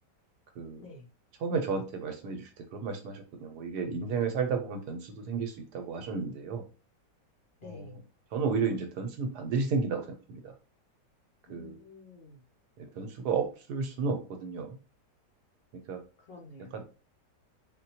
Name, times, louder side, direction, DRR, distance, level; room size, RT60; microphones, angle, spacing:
voice 1, 0.8-1.1 7.6-8.0 11.5-12.4 16.3-16.8, left 3 dB, 75° left, 0 dB, 0.5 m, -49 dB
voice 2, 1.4-6.6 7.6-8.0 8.3-10.5 11.5-11.8 12.8-14.8 15.9-16.0 16.7-16.8, right 5 dB, 75° right, 5 dB, 1.1 m, -32 dB
3.8 x 2.2 x 2.8 m, 0.34 s
omnidirectional pair, 1.9 m